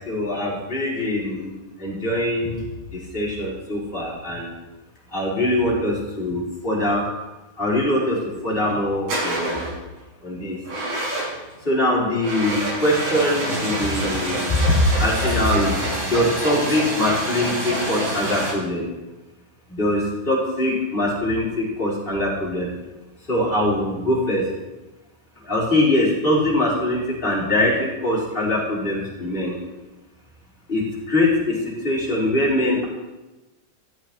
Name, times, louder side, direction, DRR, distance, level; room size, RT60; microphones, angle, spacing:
voice 1, 0.0-2.6 2.9-4.5 5.1-7.1 7.6-9.7 10.2-10.6 11.6-18.9 19.7-22.7 23.3-24.5 25.4-29.5 30.7-32.9, left 1 dB, 15° left, -6 dB, 4.5 m, -22 dB
sound 1, 8.5-8.7 9.1-9.8 10.6-11.5 12.2-18.5, right 1 dB, 75° right, 7.9 m, -27 dB
14.5 x 13.5 x 4.6 m, 1.1 s
omnidirectional pair, 4.5 m